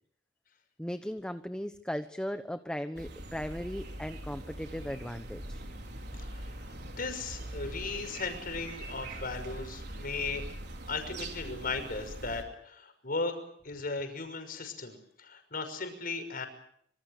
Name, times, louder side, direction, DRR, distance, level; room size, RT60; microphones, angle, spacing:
voice 1, 0.8-5.6, equal, 5° left, 9 dB, 1.0 m, -37 dB
sound 1, 3.0-12.4, right 1 dB, 65° right, 5.0 m, -42 dB
voice 2, 6.2-6.5 7.0-10.5 10.9-13.4 13.6-16.5, left 3 dB, 50° left, 8 dB, 6.0 m, -36 dB
26.5 x 25.5 x 6.7 m, 0.68 s
head